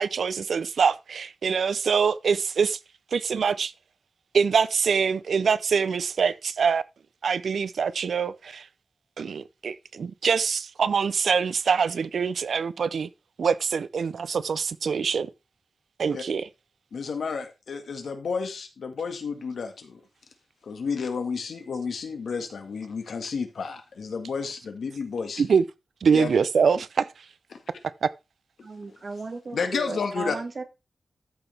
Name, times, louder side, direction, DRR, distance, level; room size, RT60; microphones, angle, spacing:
voice 1, 0.0-2.8 3.1-3.7 4.3-6.8 7.2-8.6 9.2-13.1 13.4-15.3 16.0-16.5 25.4-25.6 26.0-27.1 28.0-28.1, right 6 dB, 75° right, 0.5 m, -24 dB
voice 2, 16.9-20.0 20.6-25.5 26.1-26.3 27.5-27.6 28.9-29.0 29.5-30.4, left 5 dB, 85° left, 1.8 m, -31 dB
voice 3, 28.6-30.6, right 3 dB, 40° right, 1.5 m, -35 dB
13.0 x 6.0 x 3.4 m
wide cardioid pair, 175°, 0 cm